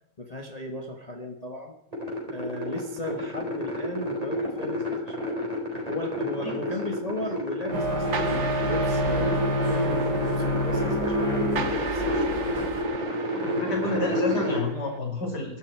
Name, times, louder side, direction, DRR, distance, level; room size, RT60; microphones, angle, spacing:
voice 1, 0.2-1.8 2.3-5.4 5.9-12.5, left 2 dB, 25° left, 3 dB, 1.5 m, -36 dB
sound 1, 1.9-14.6, left 1 dB, 20° right, 5.0 m, -30 dB
sound 2, 7.7-12.8, equal, 80° right, 5.5 m, -28 dB
sound 3, 8.1-15.0, right 5 dB, 45° right, 1.5 m, -38 dB
voice 2, 13.3-15.6, left 2 dB, 80° left, 0 dB, 6.2 m, -30 dB
22.5 x 13.5 x 4.7 m, 0.82 s
omnidirectional pair, 1.8 m